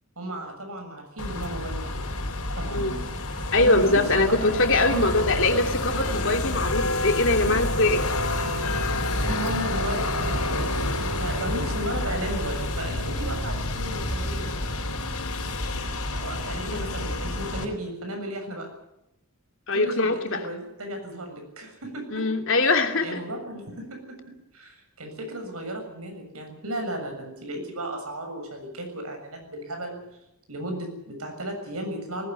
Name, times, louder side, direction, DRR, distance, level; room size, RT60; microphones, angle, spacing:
voice 1, 0.2-2.0 2.5-3.1 3.6-4.5 4.8-5.1 5.7-5.8 7.4-7.6 9.0-14.5 16.1-18.7 19.7-22.4 23.0-30.2 30.5-32.3, right 1 dB, 75° right, 4 dB, 7.2 m, -35 dB
sound 1, 1.2-17.6, left 2 dB, 85° left, 4.1 m, -28 dB
voice 2, 3.5-8.0 8.4-8.6 16.6-16.9 19.7-20.5 22.1-23.2, left 2 dB, 60° left, 4 dB, 2.9 m, -23 dB
19.5 x 18.0 x 9.8 m, 0.83 s
head